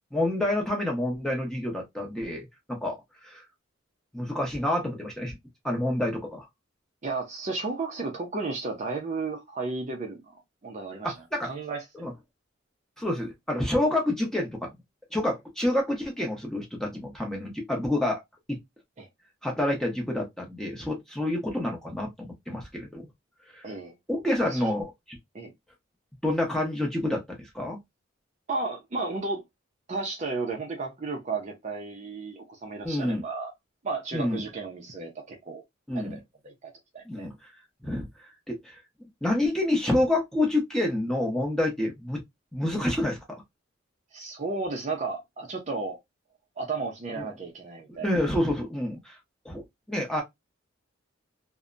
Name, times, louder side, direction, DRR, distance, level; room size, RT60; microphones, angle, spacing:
voice 1, 0.1-3.4 4.1-5.4 5.6-6.5 11.0-11.5 11.9-12.1 13.0-14.8 15.1-18.2 18.5-18.6 19.4-23.1 23.5-23.6 24.1-25.2 26.2-27.8 32.8-33.2 34.1-34.4 35.9-36.2 37.0-37.3 37.8-38.1 38.5-38.8 39.2-42.2 42.5-43.2 48.0-49.2 49.4-49.6 49.9-50.2, left 1 dB, ahead, 0.7 m, -28 dB
voice 2, 7.0-10.2 10.6-11.1 11.4-11.8 19.0-19.1 23.6-23.9 24.4-24.7 25.3-25.5 28.5-29.4 29.9-33.5 33.8-35.6 35.9-36.2 36.4-37.3 44.1-46.0 46.6-48.1, right 3 dB, 35° right, 0.5 m, -33 dB
2.7 x 2.1 x 2.4 m
head